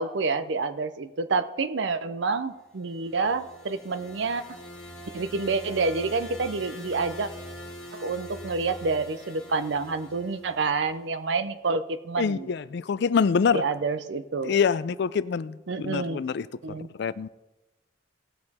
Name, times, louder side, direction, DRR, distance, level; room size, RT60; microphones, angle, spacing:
voice 1, 0.0-4.4 5.1-7.3 7.9-12.5 13.5-14.5 15.7-16.2 16.6-16.9, right 4 dB, 70° right, 0.6 m, -28 dB
sound 1, 2.8-11.0, equal, 5° left, 1.6 m, -43 dB
voice 2, 12.2-13.6 14.4-17.3, left 6 dB, 65° left, 0.4 m, -26 dB
18.0 x 6.7 x 4.2 m
head